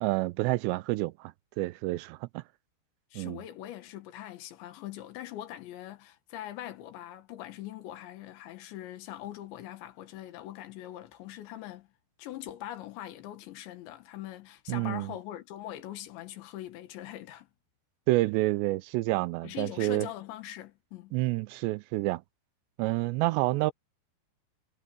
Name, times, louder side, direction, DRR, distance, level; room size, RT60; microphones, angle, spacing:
voice 1, 0.0-1.3 1.6-2.4 3.2-3.4 14.7-15.1 18.1-20.1 21.1-22.2 22.8-23.7, right 20 dB, 85° right, 2.8 m, -28 dB
voice 2, 3.1-11.9 12.2-17.5 19.4-21.2, left 13 dB, 85° left, 3.8 m, -42 dB
omnidirectional pair, 5.0 m